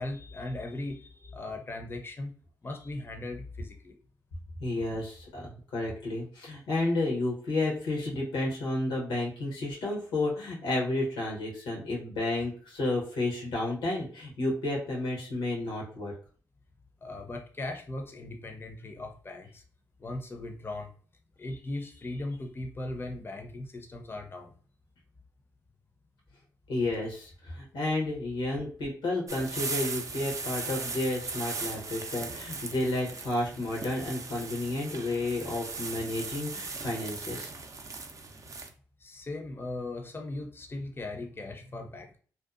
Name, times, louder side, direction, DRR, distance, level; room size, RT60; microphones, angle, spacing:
voice 1, 0.0-2.3 2.6-4.0 17.0-19.6 20.0-20.9 21.4-24.6 39.0-42.2, left 2 dB, 30° left, 3 dB, 0.6 m, -38 dB
voice 2, 4.6-16.1 26.7-37.5, left 2 dB, 90° left, -2 dB, 0.9 m, -31 dB
sound 1, 29.3-38.7, right 4 dB, 40° right, 0.4 m, -38 dB
2.7 x 2.2 x 2.4 m, 0.43 s
supercardioid pair, 45°, 8 cm